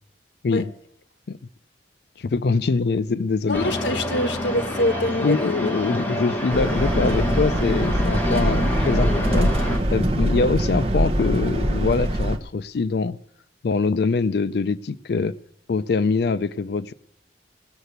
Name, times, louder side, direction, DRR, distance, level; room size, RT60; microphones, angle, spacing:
voice 1, 2.2-3.7 5.2-9.5 9.9-13.2 13.6-15.3 15.7-16.9, left 4 dB, 60° left, 15 dB, 0.4 m, -23 dB
voice 2, 3.5-5.7, left 1 dB, 85° left, 10 dB, 1.1 m, -24 dB
sound 1, 3.5-9.8, left 1 dB, 10° left, 1.8 m, -27 dB
sound 2, 6.5-12.4, right 1 dB, 35° right, 1.0 m, -23 dB
16.5 x 6.7 x 8.0 m, 0.70 s
head